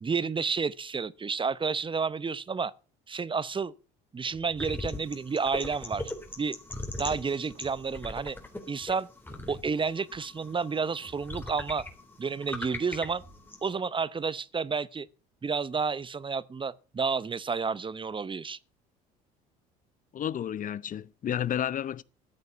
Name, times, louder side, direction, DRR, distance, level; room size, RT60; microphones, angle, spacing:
voice 1, 0.0-2.7 3.1-3.7 4.1-6.1 6.4-6.6 7.0-8.4 8.7-9.1 9.5-11.8 12.2-13.2 13.6-15.1 15.4-18.6, right 5 dB, 25° right, 0.8 m, -30 dB
sound 1, 4.3-4.9 6.0-6.6 7.5-8.2 9.3-9.9 11.0-11.7 13.0-13.6, right 4 dB, 40° right, 3.5 m, -55 dB
sound 2, 4.6-13.7, left 1 dB, 10° left, 3.6 m, -40 dB
voice 2, 20.1-22.0, left 10 dB, 40° left, 0.7 m, -31 dB
14.0 x 8.0 x 7.0 m
hypercardioid pair, 65°, 21 cm